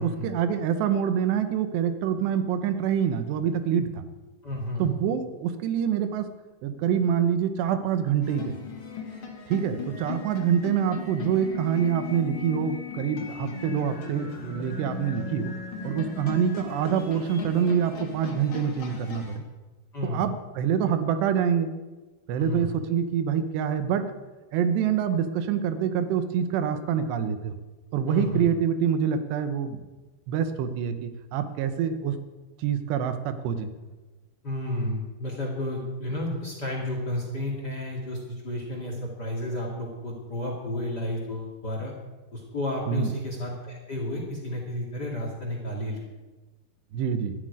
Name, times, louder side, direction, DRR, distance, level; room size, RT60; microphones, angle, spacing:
voice 1, 0.0-4.0 4.8-6.3 6.6-8.6 9.5-15.5 15.8-19.4 20.0-21.7 22.3-24.0 24.5-27.6 27.9-29.8 30.3-32.2 32.6-33.7 42.9-43.1 46.9-47.3, right 8 dB, 90° right, 9 dB, 3.2 m, -26 dB
voice 2, 4.4-4.9 19.9-20.2 22.3-22.7 28.1-28.5 34.4-41.9 42.3-46.0, left 1 dB, 30° left, 0 dB, 2.1 m, -32 dB
sound 1, 8.2-19.4, left 4 dB, 45° left, 1.8 m, -37 dB
13.0 x 7.7 x 9.7 m, 1.2 s
omnidirectional pair, 4.8 m